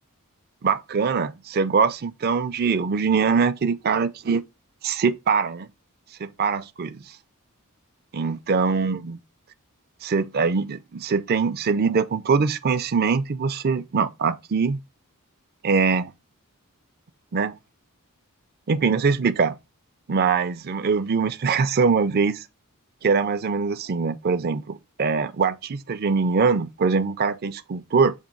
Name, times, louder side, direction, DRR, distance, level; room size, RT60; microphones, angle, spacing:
voice 1, 0.6-4.4 4.8-5.7 6.2-7.0 8.1-9.2 10.0-14.8 15.6-16.1 17.3-17.6 18.7-19.6 20.1-22.4 23.0-28.1, right 5 dB, 45° right, 0.5 m, -23 dB
7.3 x 2.7 x 5.2 m
head